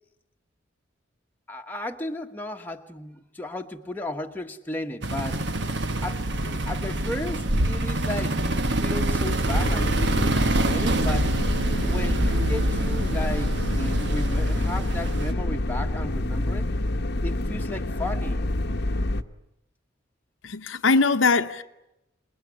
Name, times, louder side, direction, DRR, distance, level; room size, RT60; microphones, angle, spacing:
voice 1, 1.5-5.4 6.0-11.3 11.8-16.7 17.2-18.5, left 1 dB, 10° left, 1.3 m, -34 dB
sound 1, 5.0-15.3, right 2 dB, 60° right, 1.2 m, -26 dB
sound 2, 9.5-19.2, left 1 dB, 55° left, 1.0 m, -27 dB
voice 2, 20.4-21.6, left 4 dB, 80° left, 0.9 m, -21 dB
27.5 x 21.0 x 9.9 m
head